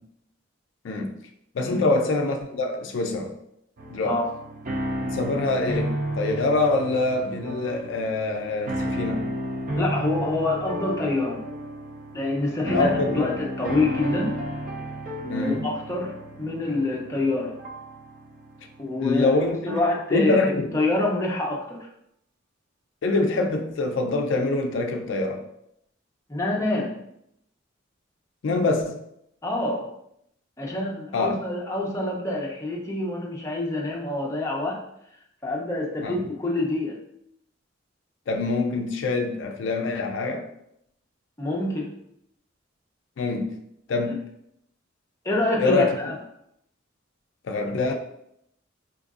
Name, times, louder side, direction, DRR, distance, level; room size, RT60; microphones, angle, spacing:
voice 1, 0.8-1.2 1.5-3.4 3.9-4.2 5.0-9.3 12.6-13.3 15.3-15.7 19.0-19.8 20.1-20.7 23.0-25.4 28.4-29.0 31.1-31.4 36.0-36.2 38.3-40.5 43.2-43.6 43.9-44.2 45.6-46.0 47.4-47.9, left 3 dB, 70° left, 4 dB, 0.4 m, -25 dB
sound 1, 3.8-20.0, right 1 dB, 45° right, 0.4 m, -32 dB
voice 2, 9.8-11.4 12.1-12.9 13.1-14.4 15.2-16.1 16.4-17.6 18.8-19.3 19.6-21.9 26.3-27.0 29.4-29.9 30.6-34.8 35.4-37.0 41.4-41.9 45.2-46.1, left 2 dB, 15° left, -3 dB, 0.5 m, -26 dB
4.6 x 2.5 x 2.4 m, 0.75 s
head